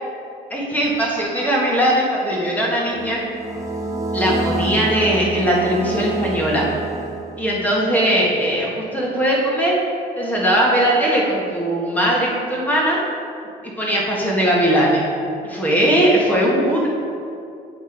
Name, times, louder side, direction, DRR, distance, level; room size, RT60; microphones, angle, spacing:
voice 1, 0.5-3.2 4.1-6.7 7.4-9.8 10.2-13.0 13.8-15.0 15.4-16.9, equal, 10° left, -4 dB, 1.5 m, -19 dB
sound 1, 2.9-7.6, right 2 dB, 20° right, 0.8 m, -27 dB
8.2 x 3.4 x 4.5 m, 2.5 s
cardioid pair, 110°, 17 cm